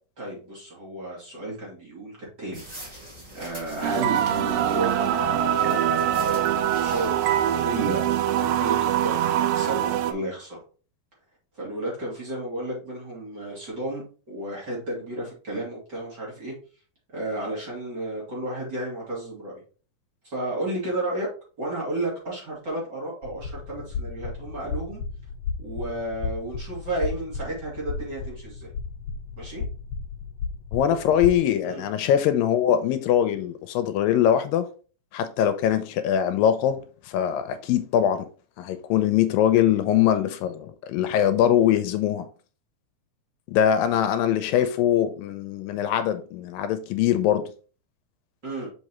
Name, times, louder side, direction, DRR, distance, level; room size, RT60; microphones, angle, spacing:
voice 1, 0.2-3.0 3.3-5.2 5.6-6.4 6.7-8.1 8.4-10.6 11.5-16.5 17.1-19.6 20.2-21.3 21.6-25.0 25.6-28.7 29.4-29.6 31.6-31.8 48.4-48.7, right 2 dB, 30° right, 2.9 m, -32 dB
sound 1, 2.5-7.6, right 1 dB, 50° right, 0.4 m, -43 dB
sound 2, 3.8-10.1, right 10 dB, 90° right, 1.7 m, -23 dB
sound 3, 23.2-31.4, left 5 dB, 65° left, 1.7 m, -34 dB
voice 2, 30.7-34.7 35.1-36.8 37.1-38.3 38.6-42.3 43.5-47.5, left 10 dB, 80° left, 2.3 m, -22 dB
6.5 x 5.2 x 3.0 m
omnidirectional pair, 4.1 m